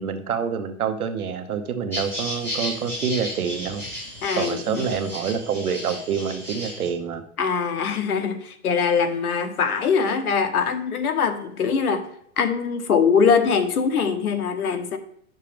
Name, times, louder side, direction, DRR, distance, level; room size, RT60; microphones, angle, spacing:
voice 1, 0.0-3.8 4.3-7.2, right 6 dB, 80° right, 8 dB, 1.2 m, -27 dB
sound 1, 1.9-6.9, equal, 5° left, 1.7 m, -33 dB
voice 2, 4.2-4.9 7.4-12.1 12.4-15.0, left 6 dB, 90° left, 7 dB, 1.3 m, -22 dB
9.0 x 6.6 x 3.4 m, 0.68 s
hypercardioid pair, 175°, 43 cm